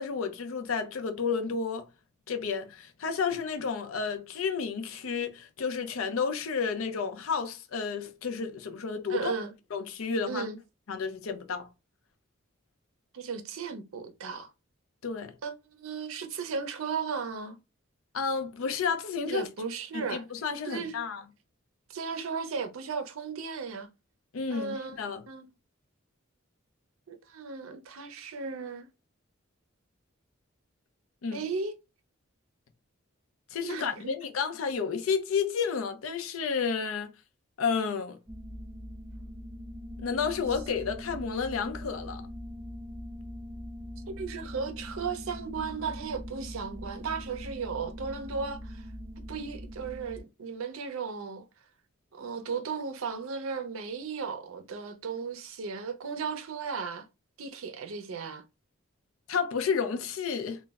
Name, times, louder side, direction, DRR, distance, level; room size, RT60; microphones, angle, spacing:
voice 1, 0.0-1.9 2.3-9.3 9.7-10.5 10.9-11.7 15.0-15.3 18.1-19.4 19.9-21.2 24.3-25.2 31.2-31.4 33.5-37.1 37.6-38.2 40.0-42.2 59.3-60.6, left 5 dB, 80° left, 0.5 m, -31 dB
voice 2, 9.1-9.5 10.3-10.6 13.1-14.5 15.4-17.6 19.3-20.2 20.6-20.9 21.9-23.9 24.5-25.0 25.3-25.5 27.1-28.9 31.3-31.8 33.6-34.1 44.1-48.8 49.3-51.4 52.1-57.1 57.4-58.4, right 5 dB, 80° right, 0.5 m, -35 dB
sound 1, 38.3-50.2, equal, 5° right, 0.3 m, -42 dB
2.2 x 2.0 x 3.4 m
head